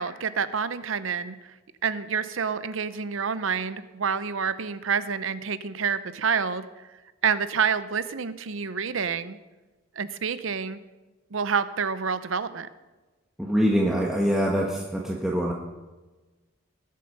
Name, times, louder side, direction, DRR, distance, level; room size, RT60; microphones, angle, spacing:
voice 1, 0.0-1.4 1.8-6.7 7.2-9.4 10.0-10.8 11.3-12.7, right 6 dB, 80° right, 13 dB, 0.7 m, -28 dB
voice 2, 13.4-15.5, equal, 5° right, -3 dB, 1.2 m, -24 dB
20.0 x 7.6 x 5.4 m, 1.2 s
head